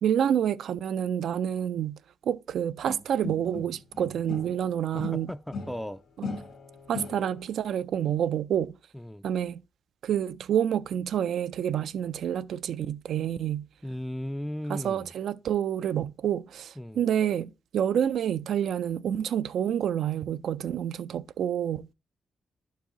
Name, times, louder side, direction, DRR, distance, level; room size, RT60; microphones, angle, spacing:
voice 1, 0.0-5.3 6.2-6.3 6.9-8.7 9.2-9.6 10.0-13.7 14.7-21.9, right 9 dB, 80° right, 0.3 m, -28 dB
sound 1, 2.9-4.6 5.0-7.6, left 4 dB, 70° left, 1.7 m, -39 dB
voice 2, 4.9-6.0 8.9-9.2 13.8-15.1 16.8-17.0, equal, 5° left, 0.3 m, -36 dB
11.0 x 4.6 x 2.9 m
cardioid pair, 80°, 0 cm